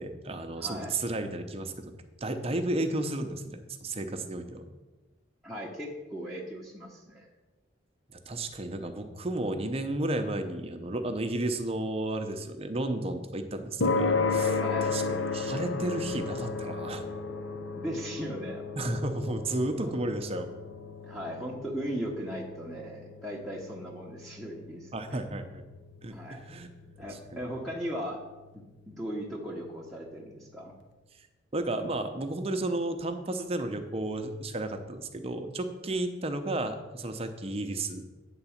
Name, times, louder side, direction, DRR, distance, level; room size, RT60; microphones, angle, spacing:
voice 1, 0.0-1.9 2.2-4.7 8.3-17.0 18.8-20.5 24.9-25.6 26.0-26.7 27.1-27.4 31.5-38.0, right 2 dB, 30° right, 7 dB, 0.6 m, -33 dB
voice 2, 0.6-0.9 5.4-7.3 14.6-14.9 17.7-18.6 19.8-19.9 21.0-25.2 26.1-26.4 27.0-28.2 28.5-30.7, equal, ahead, -5 dB, 0.9 m, -38 dB
sound 1, 13.8-30.3, left 4 dB, 70° left, 0.8 m, -35 dB
9.0 x 3.9 x 7.1 m, 1.2 s
head